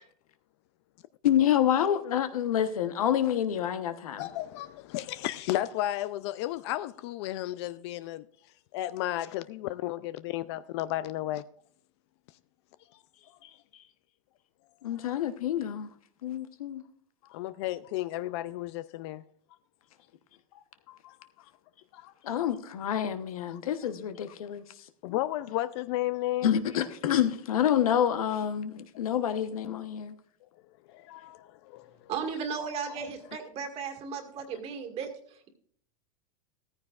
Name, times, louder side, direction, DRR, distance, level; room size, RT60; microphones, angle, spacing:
voice 1, 1.2-4.3 14.8-15.9 16.2-16.8 22.2-24.6 25.1-25.2 26.4-30.2, left 10 dB, 90° left, 1.0 m, -28 dB
voice 2, 4.2-8.2 8.7-11.4 13.4-13.5 17.3-19.2 20.9-21.1 21.9-22.1 23.5-23.6 25.0-26.6 30.9-31.9, left 14 dB, 50° left, 0.4 m, -33 dB
voice 3, 32.1-35.5, right 6 dB, 35° right, 1.9 m, -35 dB
15.0 x 14.0 x 2.4 m
supercardioid pair, 145°, 18 cm